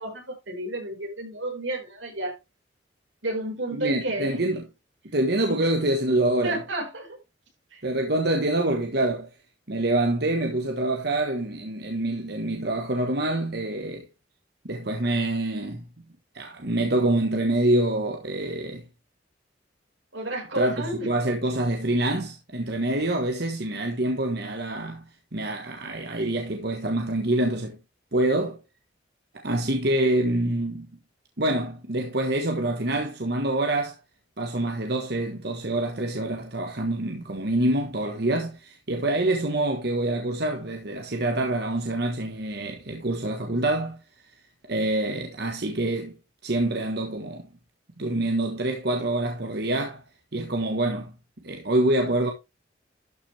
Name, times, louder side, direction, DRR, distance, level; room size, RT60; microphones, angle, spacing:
voice 1, 0.0-2.4 3.2-4.3 5.5-5.6 6.4-7.2 7.7-7.8 20.1-21.1, right 1 dB, 85° right, 5.2 m, -31 dB
voice 2, 3.7-4.6 5.1-6.6 7.8-9.3 9.7-14.1 14.6-15.8 16.3-18.8 20.6-25.0 25.3-27.8 28.1-28.6 29.3-30.9 31.4-34.0 34.4-44.0 44.7-46.2 46.4-47.4 48.0-50.0 50.3-51.1 51.4-52.3, right 1 dB, 60° right, 1.4 m, -26 dB
12.5 x 6.1 x 3.4 m
head